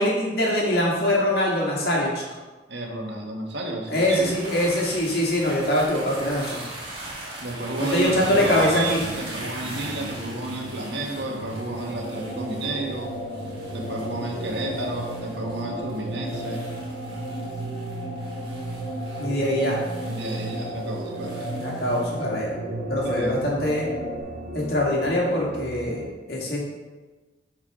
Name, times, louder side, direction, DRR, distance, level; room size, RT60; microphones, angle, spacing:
voice 1, 0.0-2.1 3.9-6.6 7.8-9.0 19.2-19.8 21.6-22.6 22.9-23.9 24.5-26.7, left 1 dB, 60° left, -3 dB, 2.1 m, -23 dB
voice 2, 2.7-4.4 7.4-13.1 13.7-16.6 20.0-21.6 23.0-23.5, right 2 dB, 80° right, 1 dB, 1.4 m, -31 dB
sound 1, 3.9-22.2, right 1 dB, 30° right, 1.8 m, -40 dB
sound 2, 8.1-26.1, right 1 dB, 65° right, 1.2 m, -37 dB
sound 3, 11.7-24.2, right 1 dB, 35° left, 1.5 m, -36 dB
8.4 x 4.6 x 5.0 m, 1.2 s
head